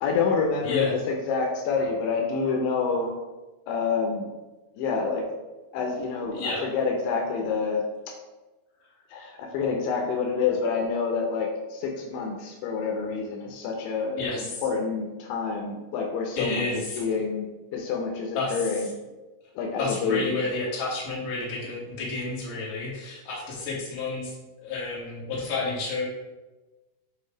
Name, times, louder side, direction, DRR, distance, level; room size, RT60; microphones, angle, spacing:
voice 1, 0.0-3.1 3.7-4.3 4.8-5.3 5.7-7.8 9.1-16.7 17.0-18.9 19.6-20.4, left 5 dB, 85° left, 0 dB, 2.8 m, -27 dB
voice 2, 6.3-6.7 14.2-14.6 16.4-17.0 18.3-18.8 19.8-24.3 24.6-26.1, left 3 dB, 60° left, -5 dB, 3.0 m, -30 dB
7.8 x 2.7 x 5.0 m, 1.1 s
omnidirectional pair, 4.5 m